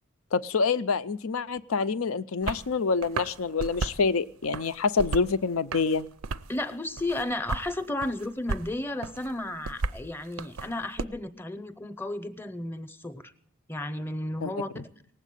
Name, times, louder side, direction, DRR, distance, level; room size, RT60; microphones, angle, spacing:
voice 1, 0.3-6.1 14.4-14.8, left 4 dB, 80° left, 15 dB, 0.6 m, -27 dB
sound 1, 2.4-2.7 3.0-4.0 4.4-5.3 5.7-6.6 7.0-7.7 8.0-8.7 9.0-11.0, right 4 dB, 85° right, 0.5 m, -34 dB
voice 2, 6.5-13.3 13.7-14.7, left 1 dB, 10° left, 11 dB, 0.7 m, -33 dB
18.5 x 8.2 x 9.1 m, 0.62 s
head